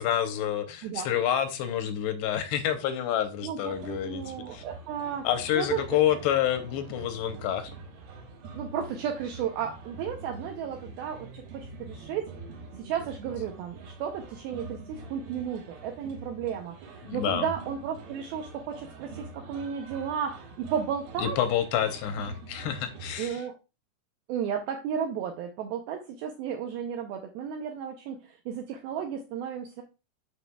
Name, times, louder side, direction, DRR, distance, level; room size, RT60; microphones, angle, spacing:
voice 1, 0.0-4.6 5.2-7.7 17.0-17.5 21.2-23.4, left 10 dB, 80° left, 2.7 m, -28 dB
voice 2, 3.4-5.3 5.6-6.0 8.6-12.4 12.8-21.4 23.2-23.5 24.3-29.8, right 8 dB, 85° right, 2.2 m, -33 dB
sound 1, 3.6-23.3, right 3 dB, 70° right, 2.8 m, -45 dB
11.5 x 4.0 x 2.3 m
omnidirectional pair, 5.0 m